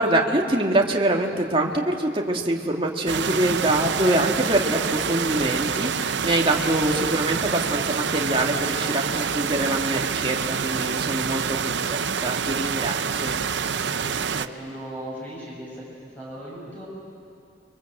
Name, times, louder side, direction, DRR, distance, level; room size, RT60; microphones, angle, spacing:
voice 1, 0.0-13.4, right 1 dB, 30° right, 0 dB, 2.0 m, -24 dB
sound 1, 3.1-14.5, right 6 dB, 80° right, 0.7 m, -27 dB
voice 2, 13.7-15.8 16.2-16.9, right 1 dB, 10° left, -6 dB, 7.4 m, -37 dB
29.5 x 23.5 x 7.9 m, 2.3 s
head